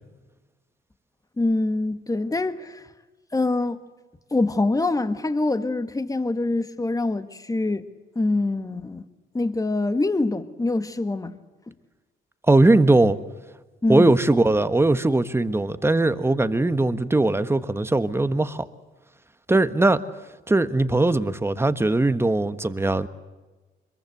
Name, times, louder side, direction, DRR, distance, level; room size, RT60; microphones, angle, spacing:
voice 1, 1.4-2.8 3.3-3.8 4.3-7.8 8.2-9.0 9.3-11.3 13.8-14.1, left 2 dB, 15° left, 10 dB, 1.7 m, -24 dB
voice 2, 12.5-13.2 13.9-18.6 19.5-20.0 20.5-23.1, right 2 dB, 10° right, 12 dB, 1.4 m, -20 dB
25.0 x 22.5 x 8.0 m, 1.2 s
cardioid pair, 90°, 20 cm